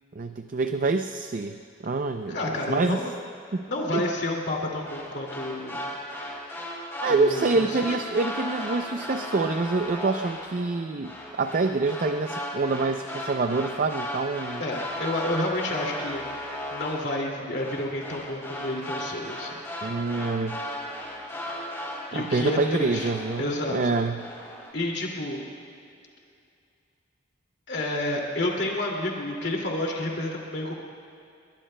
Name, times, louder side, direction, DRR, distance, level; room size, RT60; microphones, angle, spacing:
voice 1, 0.2-1.6 1.8-2.4 2.7-3.0 3.5-4.0 7.0-14.6 19.8-20.6 22.1-24.2, right 3 dB, 45° right, 7 dB, 0.5 m, -26 dB
voice 2, 2.3-3.1 3.7-5.9 7.1-8.0 14.6-19.5 22.1-24.0 24.7-25.4 27.7-30.8, left 1 dB, 60° left, -1 dB, 2.4 m, -30 dB
sound 1, 4.8-23.9 24.2-24.7, left 1 dB, 15° left, 3.2 m, -36 dB
29.5 x 22.0 x 2.2 m, 2.5 s
head